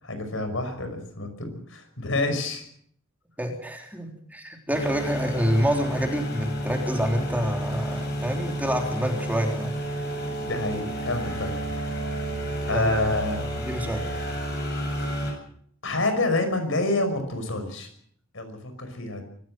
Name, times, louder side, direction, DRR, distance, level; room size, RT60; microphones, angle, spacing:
voice 1, 0.0-2.6 10.4-11.6 12.7-13.4 15.8-17.9 18.3-19.2, left 2 dB, 70° left, 7 dB, 5.6 m, -28 dB
voice 2, 3.4-9.8 12.7-13.0 13.6-14.1, equal, 10° right, 2 dB, 3.6 m, -27 dB
sound 1, 4.7-15.3, equal, 55° left, 8.0 m, -30 dB
24.5 x 15.5 x 7.7 m, 0.64 s
head